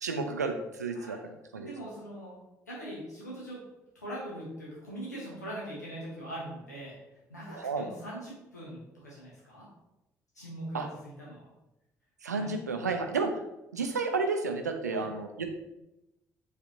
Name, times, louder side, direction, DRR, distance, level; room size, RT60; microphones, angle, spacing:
voice 1, 0.0-1.2 1.5-1.7 7.6-7.9 10.7-10.9 12.2-13.4 13.7-15.5, right 4 dB, 85° right, 5 dB, 0.4 m, -31 dB
voice 2, 1.6-2.4 2.7-3.6 3.9-7.0 7.3-9.7 10.3-11.5 12.3-12.5 14.9-15.1, right 1 dB, 85° left, -6 dB, 1.3 m, -42 dB
4.9 x 3.3 x 2.8 m, 0.92 s
figure-of-eight pair, 45°, 9 cm